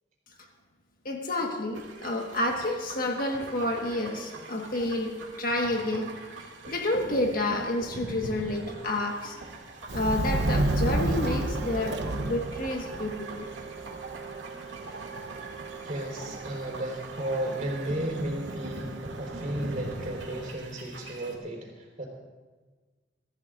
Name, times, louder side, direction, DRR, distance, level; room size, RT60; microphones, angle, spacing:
voice 1, 1.0-6.1 6.7-9.4 9.9-13.5, left 1 dB, 50° left, 2 dB, 1.6 m, -29 dB
sound 1, 1.7-21.4, right 2 dB, 85° right, 2.4 m, -43 dB
Subway metro underground, 9.9-20.5, right 2 dB, 65° right, 0.9 m, -33 dB
voice 2, 15.8-22.1, right 1 dB, 40° right, -1 dB, 4.2 m, -34 dB
24.0 x 15.0 x 2.6 m, 1.3 s
head